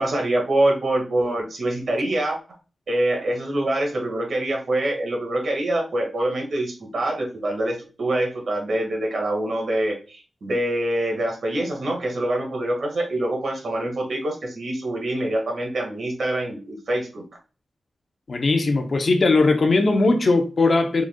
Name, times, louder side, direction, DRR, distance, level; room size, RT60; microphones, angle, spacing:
voice 1, 0.0-2.4 2.9-17.2, right 1 dB, 65° right, 1.9 m, -25 dB
voice 2, 18.3-21.0, left 3 dB, 45° left, 0.8 m, -19 dB
4.9 x 4.3 x 2.3 m
wide cardioid pair, 180°, 0 cm